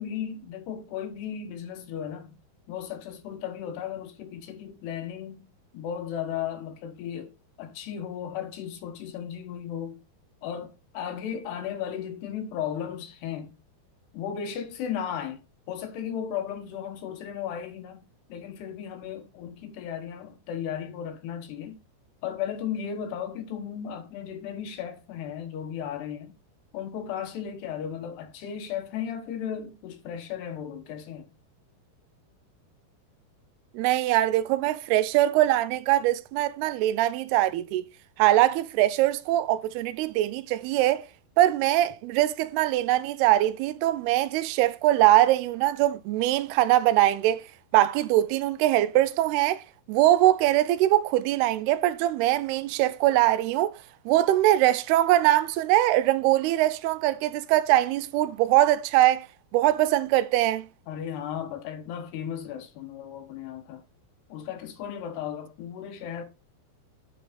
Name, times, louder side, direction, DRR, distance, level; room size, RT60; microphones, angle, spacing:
voice 1, 0.0-2.4 2.7-5.5 5.7-7.3 7.6-10.0 10.4-13.6 14.1-15.4 15.7-21.8 22.2-26.4 26.7-31.3 60.9-63.8 64.3-66.2, left 9 dB, 80° left, 3.6 m, -35 dB
voice 2, 33.7-37.8 38.2-41.1 41.4-47.4 47.7-53.7 54.1-59.3 59.5-60.7, right 14 dB, 80° right, 2.6 m, -22 dB
9.3 x 6.9 x 4.1 m
omnidirectional pair, 4.8 m